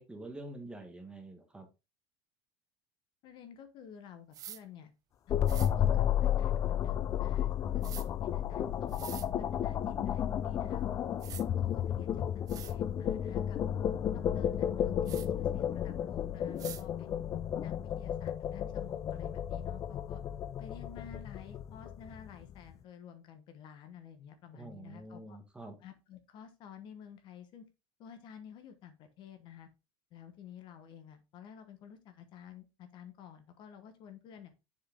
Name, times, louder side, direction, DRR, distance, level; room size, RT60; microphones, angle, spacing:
voice 1, 0.0-1.7 24.5-25.8, right 2 dB, 10° right, 4 dB, 1.3 m, -46 dB
voice 2, 3.2-4.9 5.3-11.2 11.6-13.6 14.1-17.2 17.6-20.2 20.6-25.4 25.8-27.6 28.0-29.7 30.1-34.5, left 8 dB, 45° left, 9 dB, 1.1 m, -51 dB
sound 1, 4.3-4.6 5.5-5.7 7.8-8.1 8.9-9.3 10.7-10.8 11.2-11.4 12.1-12.2 12.5-12.7 15.1-15.3 16.6-16.8, right 11 dB, 35° right, 0.5 m, -45 dB
sound 2, 5.3-22.5, left 10 dB, 30° left, 0.4 m, -32 dB
7.3 x 4.7 x 3.6 m, 0.27 s
supercardioid pair, 145°, 11 cm